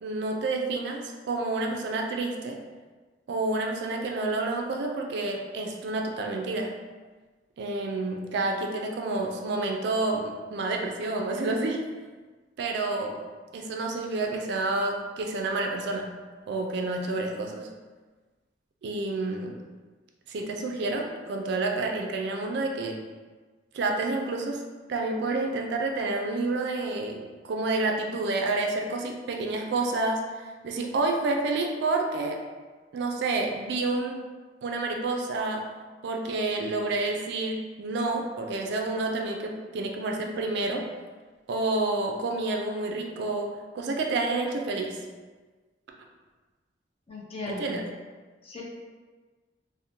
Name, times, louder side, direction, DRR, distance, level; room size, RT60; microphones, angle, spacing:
voice 1, 0.0-2.6 3.3-6.7 7.6-11.9 12.6-13.2 13.5-16.1 16.5-17.7 18.8-19.6 20.3-23.0 23.7-30.3 30.6-32.4 32.9-34.2 34.6-35.7 36.0-40.9 41.5-43.5 43.7-45.0 47.5-47.8, right 2 dB, 65° right, 2 dB, 0.3 m, -29 dB
voice 2, 47.1-47.8 48.4-48.6, left 2 dB, 35° left, -4 dB, 0.5 m, -36 dB
2.6 x 2.1 x 2.7 m, 1.4 s
head